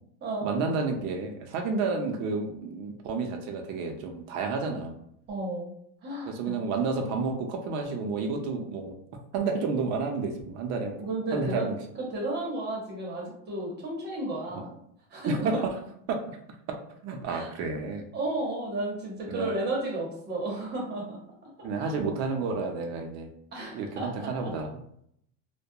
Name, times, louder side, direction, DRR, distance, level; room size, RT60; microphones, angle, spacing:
voice 1, 0.4-4.9 6.3-8.9 9.3-10.9 11.3-11.8 14.5-14.6 15.3-15.8 16.1-16.2 16.7-16.8 17.0-18.0 19.3-19.5 21.6-23.3 23.7-24.7, right 4 dB, 45° right, 4 dB, 0.5 m, -30 dB
voice 2, 5.3-5.7 6.0-6.5 11.0-11.7 12.0-14.7 15.1-15.5 17.3-17.5 18.1-21.2 21.8-21.9 23.5-24.5, right 2 dB, 25° right, -2 dB, 0.8 m, -33 dB
2.2 x 2.1 x 2.7 m, 0.70 s
supercardioid pair, 135°, 38 cm